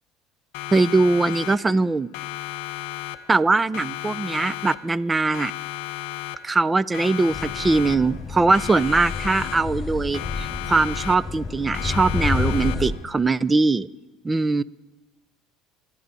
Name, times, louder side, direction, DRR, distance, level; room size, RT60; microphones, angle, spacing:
Siren, 0.5-1.9 2.1-3.5 3.7-5.1 5.3-6.7 6.9-8.3 8.5-9.9 10.1-11.5 11.7-13.1, left 14 dB, 75° left, 0.8 m, -34 dB
voice 1, 0.7-2.1 3.3-5.5 6.4-13.9 14.2-14.6, right 3 dB, 20° right, 19 dB, 0.5 m, -21 dB
sound 1, 7.3-12.9, left 4 dB, 15° left, 3.7 m, -30 dB
26.5 x 11.5 x 4.1 m, 1.1 s
supercardioid pair, 100°, 0 cm